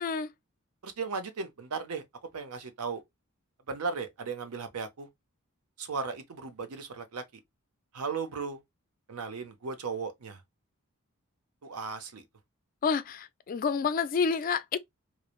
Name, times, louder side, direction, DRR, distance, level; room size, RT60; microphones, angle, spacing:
voice 1, 0.0-0.3 12.8-14.8, left 5 dB, 40° left, 0.3 m, -29 dB
voice 2, 0.8-2.0 2.3-3.0 3.7-5.1 5.8-7.2 7.9-8.6 9.1-10.4 11.6-12.2, right 5 dB, 85° right, 0.6 m, -36 dB
3.1 x 2.0 x 2.3 m
head